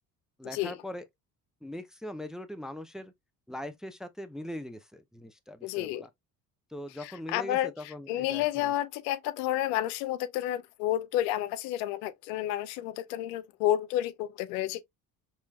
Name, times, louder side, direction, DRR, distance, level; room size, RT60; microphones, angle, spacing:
voice 1, 0.4-1.1 1.6-3.1 3.5-6.1 6.7-8.7, left 1 dB, ahead, 0.5 m, -41 dB
voice 2, 5.6-6.1 7.0-14.8, left 13 dB, 85° left, 0.5 m, -30 dB
4.4 x 3.1 x 2.2 m
hypercardioid pair, 60°, 46 cm